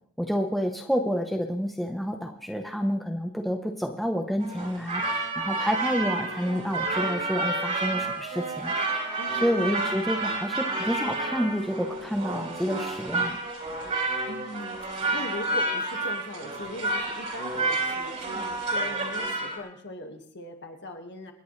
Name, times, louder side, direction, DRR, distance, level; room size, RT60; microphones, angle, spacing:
voice 1, 0.2-5.0 5.4-8.7 9.4-13.4, equal, ahead, 3 dB, 0.9 m, -29 dB
sound 1, 4.4-19.6, right 2 dB, 35° right, 3.3 m, -30 dB
Wind instrument woodwind instrument, 5.5-12.9, right 2 dB, 85° right, 2.6 m, -43 dB
voice 2, 9.2-9.7 10.5-10.6 14.3-21.3, left 1 dB, 50° left, 4 dB, 1.8 m, -40 dB
28.0 x 10.0 x 3.3 m, 0.68 s
head